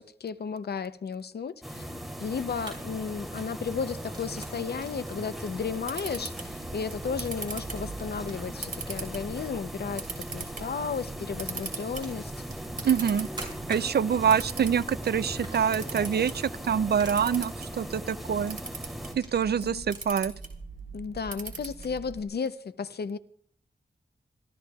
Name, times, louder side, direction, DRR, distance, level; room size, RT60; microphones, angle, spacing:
voice 1, 0.0-12.4 19.4-19.9 20.9-23.2, left 6 dB, 75° left, 0.6 m, -34 dB
sound 1, 1.6-19.1, right 1 dB, ahead, 3.2 m, -39 dB
Fire, 2.1-20.1, right 2 dB, 30° right, 6.1 m, -50 dB
Camera, 5.5-22.2, right 4 dB, 55° right, 3.2 m, -42 dB
voice 2, 12.8-13.3 13.7-18.6 19.2-20.3, right 7 dB, 75° right, 0.5 m, -25 dB
28.0 x 13.5 x 2.4 m
wide cardioid pair, 120°, 17 cm